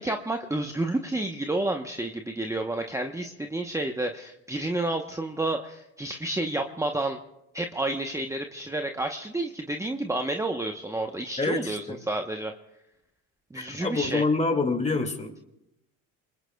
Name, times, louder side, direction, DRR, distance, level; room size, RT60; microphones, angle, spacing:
voice 1, 0.0-7.2 7.5-12.5 13.5-14.2, right 2 dB, 10° right, 4 dB, 0.9 m, -30 dB
voice 2, 11.4-12.0 13.6-15.4, left 3 dB, 20° left, 5 dB, 2.2 m, -27 dB
26.5 x 21.0 x 2.3 m, 0.89 s
supercardioid pair, 90°, 36 cm